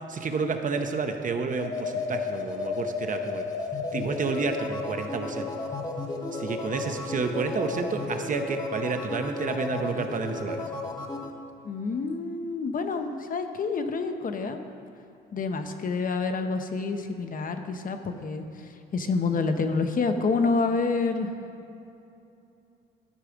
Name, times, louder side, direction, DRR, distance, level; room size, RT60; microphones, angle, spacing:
voice 1, 0.1-3.5 3.9-5.6 6.3-10.7, right 4 dB, 40° right, 6 dB, 0.8 m, -30 dB
sound 1, 1.5-11.3, left 3 dB, 20° left, 1.0 m, -33 dB
voice 2, 11.6-14.6 15.3-21.3, left 4 dB, 45° left, 7 dB, 0.8 m, -28 dB
13.0 x 4.8 x 5.1 m, 2.7 s
cardioid pair, 80°, 20 cm